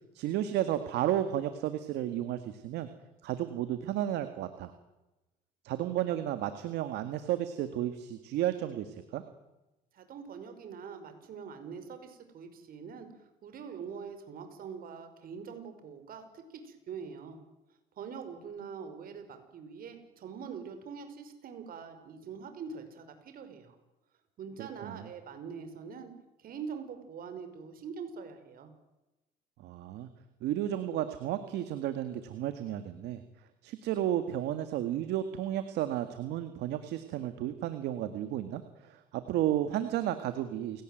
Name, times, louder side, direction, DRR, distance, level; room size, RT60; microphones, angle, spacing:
voice 1, 0.1-2.9 3.2-4.7 5.6-9.2 24.6-25.0 29.6-30.1 30.4-33.2 33.6-40.8, right 12 dB, 85° right, 10 dB, 1.9 m, -33 dB
voice 2, 9.9-17.4 18.0-23.8 24.4-26.1 26.4-28.7, right 6 dB, 60° right, 8 dB, 5.5 m, -44 dB
29.0 x 18.0 x 9.2 m, 1.0 s
cardioid pair, 110°, 17 cm